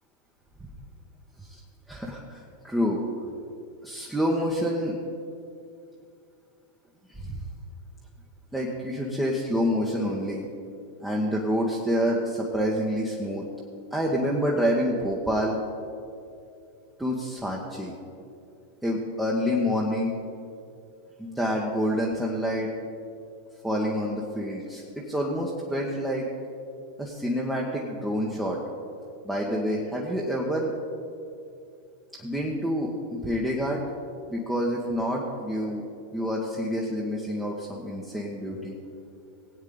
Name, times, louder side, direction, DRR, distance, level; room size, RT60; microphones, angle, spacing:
voice 1, 1.9-3.0 3.8-4.9 7.1-7.4 8.5-10.5 11.0-13.4 13.9-15.6 17.0-17.9 18.8-20.1 21.2-22.7 23.6-26.3 27.0-28.6 29.2-30.7 32.2-33.8 34.3-35.8 36.1-38.8, equal, 5° right, -3 dB, 1.2 m, -27 dB
18.5 x 8.9 x 3.8 m, 2.5 s
figure-of-eight pair, 90°, 0 cm